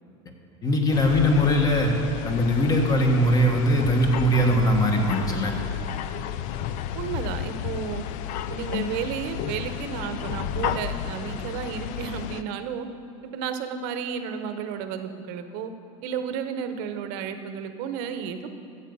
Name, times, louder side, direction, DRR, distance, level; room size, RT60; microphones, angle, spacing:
voice 1, 0.6-2.0 2.2-5.5, equal, 25° left, 3 dB, 1.5 m, -21 dB
sound 1, 0.9-12.4, left 10 dB, 55° left, 0.5 m, -32 dB
voice 2, 6.9-8.0 8.5-12.9 13.2-15.7 16.0-18.5, right 7 dB, 60° right, 9 dB, 0.9 m, -32 dB
13.0 x 8.2 x 5.4 m, 2.6 s
supercardioid pair, 135°, 16 cm